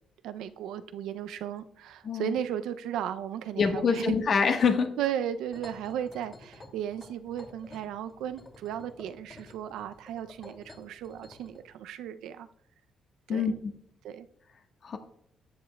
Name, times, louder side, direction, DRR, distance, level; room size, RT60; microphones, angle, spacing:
voice 1, 0.2-4.2 5.0-12.5 13.3-13.6 14.0-14.3, right 10 dB, 85° right, 11 dB, 0.4 m, -35 dB
voice 2, 2.0-2.4 3.6-4.9 13.3-13.7 14.8-15.0, left 5 dB, 55° left, 5 dB, 1.2 m, -25 dB
sound 1, 5.5-11.6, left 2 dB, 30° left, 2.3 m, -51 dB
13.5 x 8.4 x 2.3 m, 0.71 s
cardioid pair, 90°, 0 cm